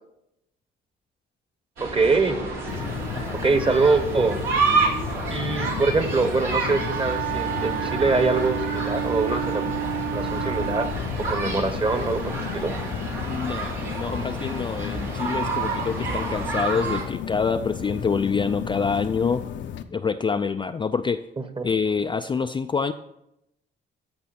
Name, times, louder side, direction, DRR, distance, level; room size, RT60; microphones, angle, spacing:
voice 1, 1.8-2.4 3.4-4.4 5.3-9.7 10.1-12.8 21.4-21.7, right 3 dB, 25° right, 9 dB, 1.2 m, -24 dB
sound 1, 1.8-17.0, right 3 dB, 85° right, 3.4 m, -29 dB
sound 2, 2.7-19.8, left 8 dB, 65° left, 0.7 m, -33 dB
voice 2, 3.1-3.5 13.3-19.4 19.9-21.2 21.6-22.9, left 5 dB, 25° left, 8 dB, 0.4 m, -26 dB
Wind instrument woodwind instrument, 6.6-11.0, right 15 dB, 55° right, 0.4 m, -30 dB
14.0 x 5.4 x 4.3 m, 0.84 s
cardioid pair, 90°, 20 cm